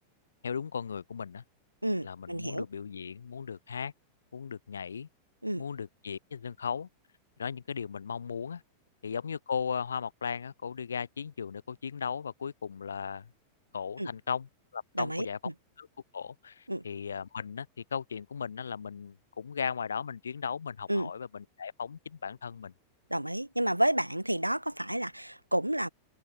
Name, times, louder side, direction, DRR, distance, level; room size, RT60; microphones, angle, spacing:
voice 1, 0.4-1.4 2.0-3.9 4.3-5.1 5.6-6.9 7.4-8.6 9.0-13.3 13.7-15.4 15.8-15.9 16.1-22.7, left 6 dB, 70° left, 0.6 m, -37 dB
voice 2, 1.8-2.6 5.4-5.6 14.0-14.1 15.0-15.3 16.7-16.8 20.9-21.1 23.1-25.9, right 1 dB, 90° right, 0.3 m, -30 dB
figure-of-eight pair, 90°, 0 cm